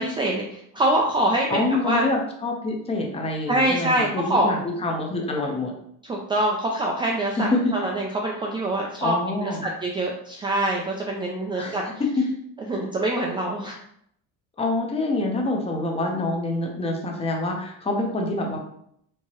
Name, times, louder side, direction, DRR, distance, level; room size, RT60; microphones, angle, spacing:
voice 1, 0.0-2.1 3.5-4.5 6.0-11.8 12.7-13.8, right 1 dB, 15° right, -1 dB, 0.3 m, -25 dB
voice 2, 1.5-5.7 7.3-7.7 9.0-9.7 11.6-12.2 14.6-18.6, left 2 dB, 20° left, 1 dB, 0.7 m, -26 dB
4.5 x 2.8 x 2.9 m, 0.70 s
cardioid pair, 150°, 30 cm